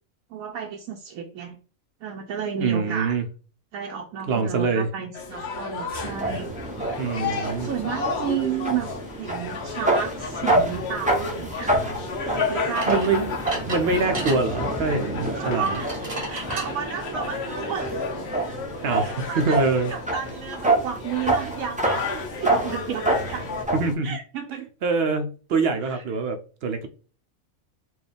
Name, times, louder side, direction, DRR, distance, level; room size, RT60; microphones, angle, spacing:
voice 1, 0.3-1.6 2.0-3.2 3.7-6.5 7.3-11.7 12.3-13.1 15.3-15.9 16.3-18.1 18.9-23.5 24.0-24.7 25.8-26.0, right 8 dB, 80° right, 1 dB, 1.0 m, -32 dB
voice 2, 2.6-3.2 4.3-4.9 7.0-7.7 12.9-13.4 13.6-15.7 18.8-19.9 23.7-24.2 24.8-26.9, right 4 dB, 60° right, 7 dB, 0.7 m, -24 dB
sound 1, 5.1-23.6, left 4 dB, 55° left, 0.9 m, -33 dB
sound 2, 6.0-23.9, right 1 dB, 10° right, 0.4 m, -28 dB
sound 3, 12.7-14.4 15.5-16.7, right 2 dB, 35° right, 0.9 m, -34 dB
4.4 x 2.3 x 3.4 m, 0.38 s
omnidirectional pair, 1.4 m